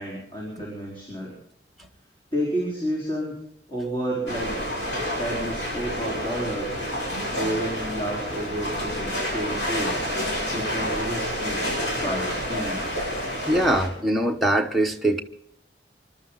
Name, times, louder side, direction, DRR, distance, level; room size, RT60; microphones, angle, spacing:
voice 1, 0.0-1.3 2.3-3.3 3.7-4.6 5.0-6.8 7.3-10.0 10.5-11.6 12.0-12.8, right 1 dB, 30° left, 4.5 m, -30 dB
sound 1, 4.3-13.9, equal, 85° left, 7.8 m, -29 dB
voice 2, 13.5-15.2, right 1 dB, ahead, 1.1 m, -22 dB
27.0 x 12.5 x 4.1 m
head